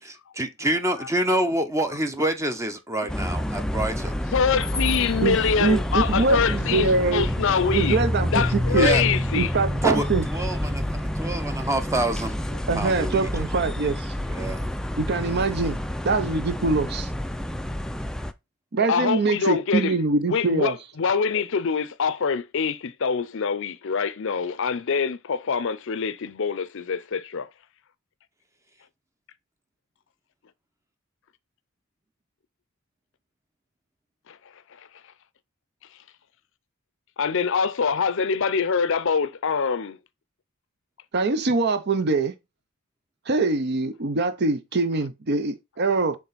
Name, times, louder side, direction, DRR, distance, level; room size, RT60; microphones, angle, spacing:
voice 1, 0.0-4.2 8.7-9.0 9.8-10.0 10.3-10.8 11.2-12.4 12.7-13.3 14.3-14.6, right 1 dB, 15° right, 0.7 m, -26 dB
voice 2, 0.7-1.1 3.0-3.1 4.3-8.0 8.3-9.5 18.8-20.0 20.3-27.5 34.3-34.4 34.8-34.9 37.2-40.0, left 6 dB, 60° left, 0.6 m, -25 dB
sound 1, 3.1-18.3, left 1 dB, 5° left, 0.4 m, -28 dB
voice 3, 5.2-7.2 7.7-8.9 9.3-10.3 12.7-14.1 15.0-15.8 16.0-17.1 18.7-20.7 41.1-42.3 43.3-46.2, right 3 dB, 50° right, 0.7 m, -23 dB
6.2 x 3.8 x 4.0 m
head